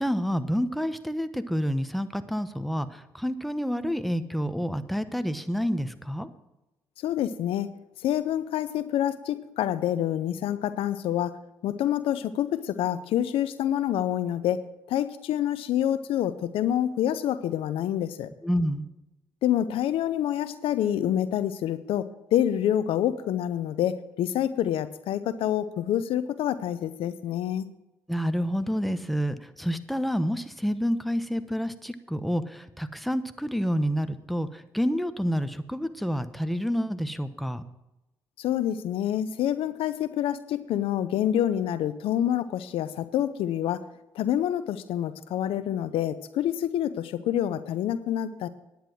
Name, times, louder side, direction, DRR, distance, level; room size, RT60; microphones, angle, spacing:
voice 1, 0.0-6.3 18.4-18.9 28.1-37.6, equal, ahead, 11 dB, 1.0 m, -28 dB
voice 2, 7.0-7.7 8.0-11.4 11.6-18.3 19.4-27.7 38.4-43.8 44.1-48.5, left 11 dB, 75° left, 14 dB, 0.6 m, -27 dB
10.5 x 9.3 x 6.2 m, 0.95 s
hypercardioid pair, 50°, 10 cm